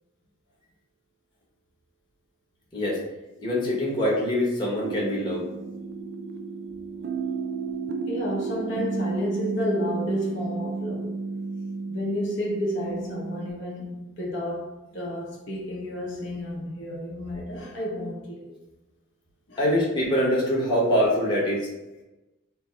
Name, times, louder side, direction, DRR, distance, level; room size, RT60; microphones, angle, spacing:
voice 1, 3.4-5.4 19.6-21.7, equal, 20° left, 1.0 m, -24 dB
sound 1, 4.8-13.5, right 4 dB, 45° right, 0.3 m, -32 dB
voice 2, 8.1-11.2 11.9-18.6 19.5-19.7, equal, 55° left, 0.9 m, -31 dB
5.1 x 2.1 x 4.5 m
head